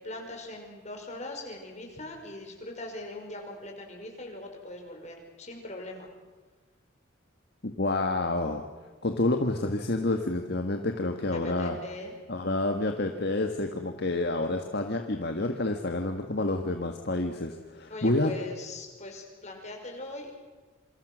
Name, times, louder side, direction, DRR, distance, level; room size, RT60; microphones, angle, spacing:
voice 1, 0.0-6.1 11.3-12.2 17.9-20.3, left 2 dB, 35° left, 2 dB, 5.6 m, -41 dB
voice 2, 7.6-8.7 9.0-11.8 12.3-18.3, left 2 dB, 55° left, 5 dB, 1.6 m, -28 dB
28.0 x 25.5 x 6.3 m, 1.3 s
head